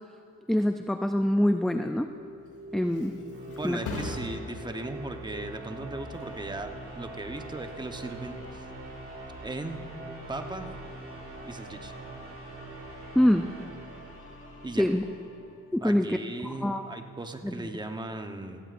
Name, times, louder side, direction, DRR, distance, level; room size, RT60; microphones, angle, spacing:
voice 1, 0.5-2.1 2.7-3.1 3.6-3.8 13.2-13.5 14.8-15.0 15.7-16.2 16.4-16.8 17.4-17.6, left 1 dB, ahead, 7 dB, 0.3 m, -24 dB
sound 1, 1.8-14.9, right 2 dB, 45° right, 2.1 m, -43 dB
Thump thud, 2.3-9.7 10.1-10.6, left 2 dB, 80° left, 2.4 m, -44 dB
voice 2, 3.5-8.7 9.4-9.8 10.3-10.7 11.4-11.9 14.6-14.9 15.8-18.6, right 2 dB, 15° right, 5 dB, 1.0 m, -37 dB
sound 2, 6.1-16.0, left 2 dB, 45° left, 3.3 m, -50 dB
16.0 x 16.0 x 2.6 m, 2.8 s
cardioid pair, 90°, 30 cm